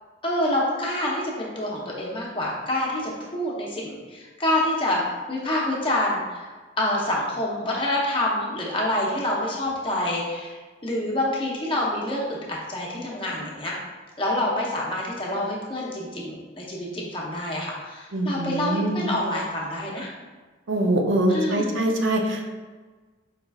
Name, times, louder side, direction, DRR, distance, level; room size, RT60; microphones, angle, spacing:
voice 1, 0.2-5.0 5.3-6.4 6.8-10.6 10.8-13.7 14.2-20.1 21.3-21.7, left 1 dB, 30° left, -4 dB, 0.8 m, -27 dB
voice 2, 18.1-19.0 20.7-22.5, right 1 dB, 85° right, 2 dB, 0.6 m, -23 dB
4.8 x 3.8 x 2.3 m, 1.3 s
head